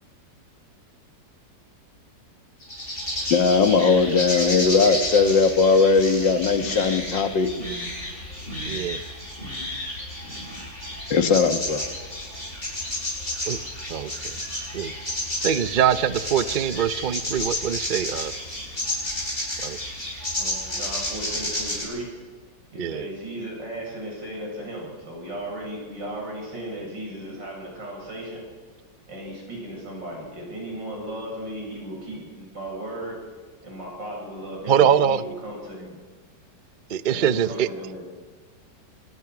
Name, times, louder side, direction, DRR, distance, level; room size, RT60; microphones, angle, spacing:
sound 1, 2.6-21.8, left 1 dB, 30° left, 7.2 m, -31 dB
voice 1, 3.3-7.5 11.1-11.8, left 5 dB, 75° left, 8 dB, 2.1 m, -19 dB
voice 2, 8.7-9.0 13.5-13.6 13.9-14.9 15.4-18.3 19.6-19.8 22.8-23.1 34.7-35.2 36.9-37.7, right 9 dB, 90° right, 14 dB, 0.4 m, -23 dB
voice 3, 20.4-22.1 22.7-28.4 29.1-33.2 33.6-36.0 37.1-38.0, right 1 dB, 75° right, -2 dB, 8.0 m, -36 dB
26.5 x 19.5 x 6.0 m, 1.5 s
omnidirectional pair, 2.0 m